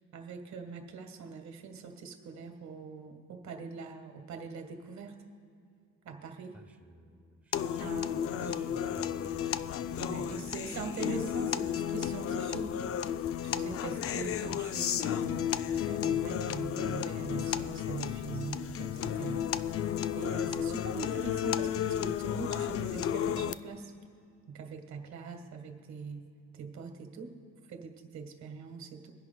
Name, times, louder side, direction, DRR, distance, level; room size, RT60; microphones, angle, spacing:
voice 1, 0.1-5.1 6.0-6.5 7.8-8.8 10.0-12.7 13.4-19.5 20.1-23.9 24.5-26.3 26.5-27.3 27.7-29.1, right 5 dB, 65° right, 5 dB, 1.4 m, -42 dB
voice 2, 6.5-8.0 8.3-9.7, right 1 dB, 5° right, 6 dB, 0.6 m, -53 dB
sound 1, 7.5-23.5, left 9 dB, 50° left, 0.4 m, -33 dB
24.0 x 10.5 x 2.2 m, 2.4 s
cardioid pair, 90°, 30 cm